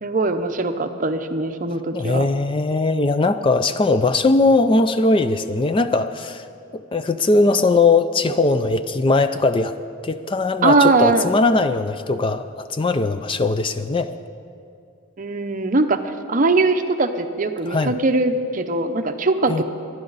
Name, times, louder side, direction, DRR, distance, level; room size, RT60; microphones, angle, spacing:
voice 1, 0.0-2.3 10.6-11.3 15.2-19.6, right 3 dB, 40° right, 8 dB, 0.7 m, -20 dB
voice 2, 1.9-6.5 6.7-9.7 10.0-14.1 17.7-18.0 19.5-19.6, left 3 dB, 25° left, 10 dB, 0.3 m, -19 dB
24.0 x 10.5 x 4.0 m, 2.6 s
head